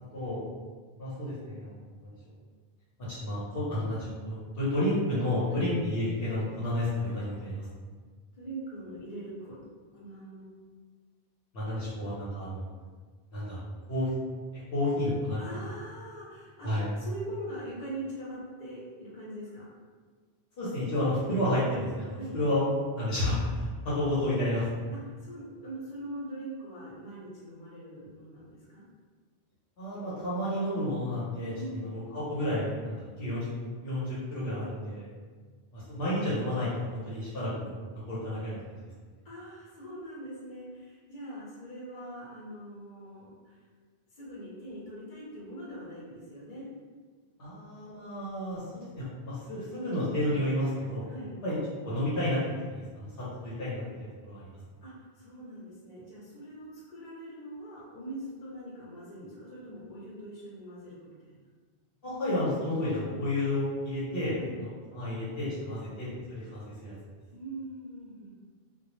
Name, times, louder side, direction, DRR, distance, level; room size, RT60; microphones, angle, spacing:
voice 1, 1.0-1.7 2.0-2.1 3.1-7.6 11.5-12.6 13.3-13.6 13.9-14.1 14.7-15.4 16.6-16.9 20.6-22.6 22.9-24.6 29.8-33.5 33.8-35.0 35.7-37.7 38.1-38.6 47.4-51.0 51.4-51.6 51.8-53.9 54.2-54.5 62.0-64.3 64.6-66.9, left 1 dB, 70° left, -9 dB, 0.9 m, -31 dB
voice 2, 8.4-9.6 9.9-10.4 15.4-16.7 16.9-19.6 22.1-22.4 24.9-28.8 31.6-31.8 39.2-43.6 44.1-46.7 51.0-51.4 54.8-61.5 64.3-64.6 67.3-68.3, right 1 dB, 45° left, -7 dB, 0.9 m, -42 dB
2.2 x 2.0 x 2.9 m, 1.5 s
omnidirectional pair, 1.0 m